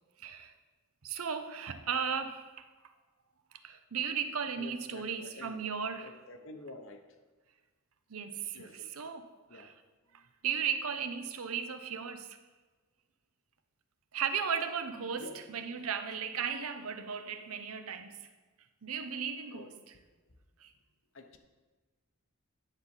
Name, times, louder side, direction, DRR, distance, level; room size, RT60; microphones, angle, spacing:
voice 1, 0.2-0.5 1.0-2.5 3.6-6.1 8.1-9.7 10.1-12.4 14.1-18.2 18.8-19.8 20.6-20.7, right 7 dB, 85° right, 9 dB, 0.7 m, -36 dB
voice 2, 4.6-5.6 6.0-7.0 8.5-8.9 9.5-9.7 10.1-10.2 15.2-15.4 19.5-19.7 21.1-21.4, left 2 dB, 65° left, 6 dB, 1.0 m, -49 dB
10.0 x 4.1 x 7.2 m, 1.3 s
head